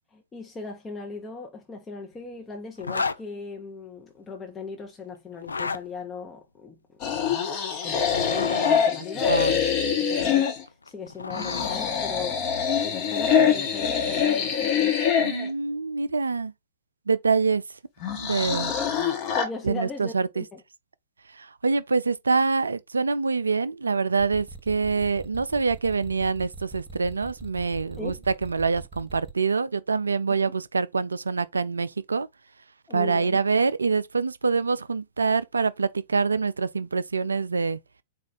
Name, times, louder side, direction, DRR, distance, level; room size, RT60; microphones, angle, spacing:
voice 1, 0.1-6.8 7.8-9.7 10.0-12.4 12.8-15.0 18.5-19.0 19.3-20.6 28.0-28.2 32.9-33.4, left 4 dB, 15° left, 0.7 m, -38 dB
Zipper (clothing), 2.8-3.2 5.3-5.8 7.9-8.8 10.7-11.8, left 4 dB, 75° left, 0.3 m, -31 dB
sound 1, 7.0-10.6 11.3-15.5 18.0-19.4, left 7 dB, 35° left, 1.0 m, -24 dB
voice 2, 15.2-16.5 17.1-17.6 18.1-18.7 19.6-20.4 21.4-32.3 32.9-37.8, right 4 dB, 75° right, 0.3 m, -25 dB
sound 2, 24.2-29.3, right 2 dB, 10° right, 1.2 m, -42 dB
4.1 x 2.4 x 3.7 m
figure-of-eight pair, 105°, 0 cm